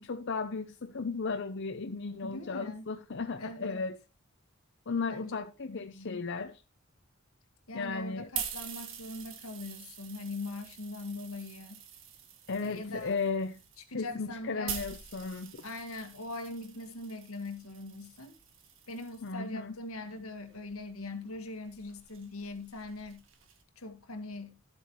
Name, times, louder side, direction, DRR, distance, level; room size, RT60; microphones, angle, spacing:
voice 1, 0.0-4.0 4.9-6.6 7.7-8.3 12.5-13.6 13.9-15.6 19.2-19.8, left 4 dB, 60° left, 0.7 m, -35 dB
voice 2, 2.2-2.8 3.4-3.8 5.1-5.4 5.7-6.3 7.7-11.8 12.6-13.2 13.9-14.8 15.6-18.3 18.9-23.2 23.8-24.6, left 2 dB, 85° left, 1.9 m, -41 dB
sound 1, 7.9-19.3 20.1-23.6, right 8 dB, 65° right, 1.6 m, -45 dB
12.5 x 8.2 x 3.1 m
head